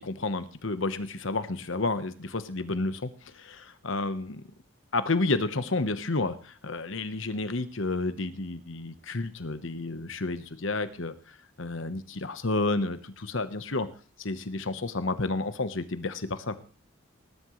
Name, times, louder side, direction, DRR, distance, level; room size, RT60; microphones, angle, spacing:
voice 1, 0.2-0.9 1.2-1.4 1.7-2.1 2.5-2.9 3.9-4.2 4.9-6.3 6.7-11.1 11.6-12.0 12.4-13.0 13.3-13.9 14.3-14.6 14.9-15.8, left 2 dB, 65° left, 11 dB, 1.1 m, -29 dB
19.0 x 11.5 x 3.2 m, 0.38 s
head